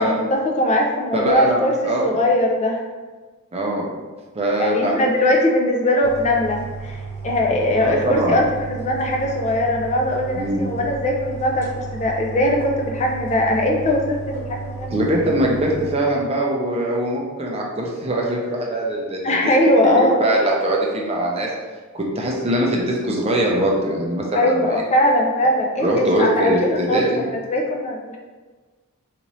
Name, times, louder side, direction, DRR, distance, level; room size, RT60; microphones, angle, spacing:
voice 1, 0.0-2.8 4.6-15.0 19.2-20.2 24.3-28.2, left 1 dB, 30° left, 1 dB, 0.4 m, -20 dB
voice 2, 1.1-2.2 3.5-3.9 4.3-5.0 7.8-8.4 10.4-10.6 14.9-19.3 20.0-21.5 21.9-24.8 25.8-27.2, right 1 dB, 30° right, -2 dB, 0.6 m, -22 dB
sound 1, 6.0-16.0, right 4 dB, 15° left, 0.7 m, -33 dB
4.0 x 2.5 x 3.0 m, 1.3 s
head